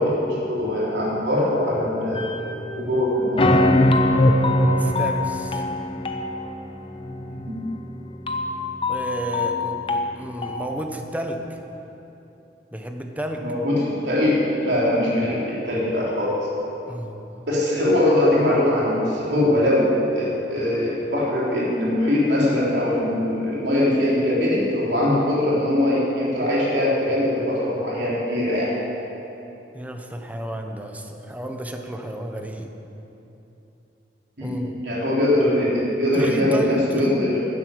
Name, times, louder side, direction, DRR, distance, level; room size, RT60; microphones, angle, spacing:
voice 1, 0.0-2.3 2.8-3.5 7.5-7.6 13.4-16.3 17.5-28.7 34.4-37.4, left 1 dB, 75° right, -6 dB, 3.6 m, -21 dB
sound 1, 2.2-2.9 3.4-10.9, left 1 dB, 30° left, 0.9 m, -22 dB
voice 2, 4.6-5.7 8.9-11.6 12.7-13.4 16.9-17.5 29.7-32.7 34.4-34.7 36.1-37.3, right 1 dB, 10° right, 4 dB, 1.0 m, -32 dB
12.0 x 10.0 x 8.0 m, 3.0 s
head